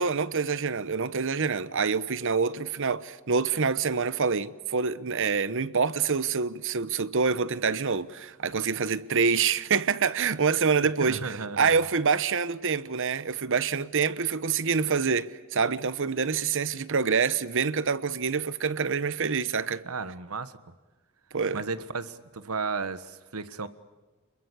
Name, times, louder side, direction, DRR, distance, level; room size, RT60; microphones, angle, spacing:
voice 1, 0.0-19.8 21.3-21.6, right 5 dB, 65° right, 1.0 m, -26 dB
voice 2, 11.0-11.7 19.8-20.5 21.5-23.7, right 4 dB, 90° right, 1.5 m, -34 dB
29.5 x 22.0 x 8.4 m
head